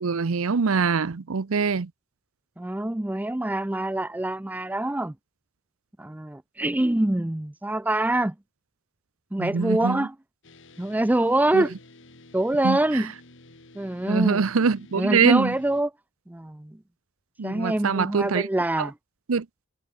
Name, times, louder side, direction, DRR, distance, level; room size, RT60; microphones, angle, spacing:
voice 1, 0.0-1.9 9.4-10.1 11.5-11.7 12.6-13.0 14.1-15.6 17.4-18.5 18.8-18.9 19.3-19.5, right 5 dB, 70° right, 0.7 m, -24 dB
voice 2, 2.6-5.1 6.0-8.3 9.3-10.1 10.8-11.7 12.3-13.1 13.7-14.4 14.9-15.9 16.3-16.8 17.4-18.9, right 1 dB, 10° right, 0.4 m, -25 dB
sound 1, 10.4-15.8, left 2 dB, 60° left, 3.2 m, -51 dB
head